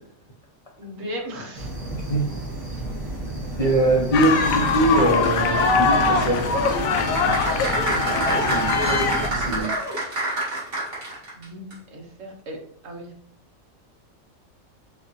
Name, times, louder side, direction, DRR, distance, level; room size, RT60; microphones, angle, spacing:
voice 1, 0.8-1.7 11.3-12.6 12.8-13.1, equal, 70° right, 0 dB, 1.3 m, -37 dB
sound 1, 1.5-9.6, right 1 dB, 85° right, 2.1 m, -32 dB
voice 2, 1.9-2.3 3.6-6.4 8.5-9.7, right 1 dB, 35° left, -2 dB, 0.6 m, -22 dB
sound 2, 4.1-9.3, left 4 dB, 80° left, 1.0 m, -22 dB
sound 3, 6.9-11.4 11.7-11.8, right 2 dB, 45° right, 1.7 m, -27 dB
5.2 x 2.4 x 3.0 m, 0.62 s
omnidirectional pair, 1.4 m